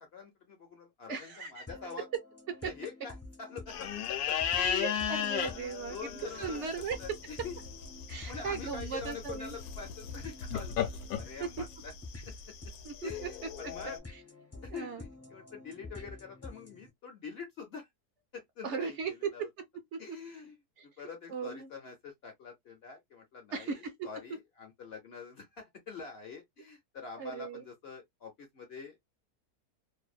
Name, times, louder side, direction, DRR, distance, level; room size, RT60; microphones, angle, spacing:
voice 1, 0.0-2.1 2.6-4.9 5.9-7.6 8.2-10.7 11.2-11.9 13.0-14.0 14.6-17.9 18.3-19.0 19.3-19.5 20.0-20.6 20.8-29.0, left 5 dB, 55° left, 0.7 m, -45 dB
voice 2, 1.1-1.7 2.6-2.7 4.5-6.1 6.4-7.0 8.1-9.6 11.4-11.5 12.8-13.3 14.1-14.2 14.7-15.0 18.6-19.1 19.9-20.2 20.8-20.9 21.3-21.7 23.5-23.9 27.2-27.6, right 5 dB, 60° right, 0.8 m, -38 dB
sound 1, 1.7-16.9, left 3 dB, 20° left, 0.4 m, -49 dB
sound 2, 3.7-14.0, left 8 dB, 75° left, 1.0 m, -36 dB
2.7 x 2.2 x 2.2 m
omnidirectional pair, 1.6 m